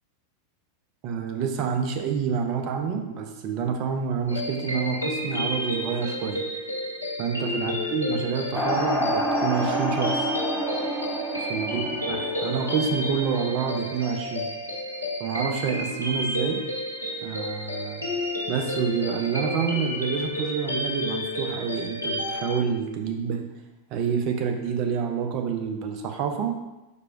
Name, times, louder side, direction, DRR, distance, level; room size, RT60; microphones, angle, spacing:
voice 1, 1.0-6.4 7.2-10.3 11.4-14.5 15.2-16.6 17.2-18.1 18.5-23.5 23.9-26.5, right 6 dB, 40° right, 3 dB, 0.6 m, -28 dB
sound 1, 4.3-22.6, left 1 dB, 85° left, 0.8 m, -31 dB
sound 2, 8.5-13.7, right 1 dB, ahead, 0.8 m, -28 dB
4.9 x 4.4 x 2.4 m, 1.0 s
figure-of-eight pair, 90°, 0 cm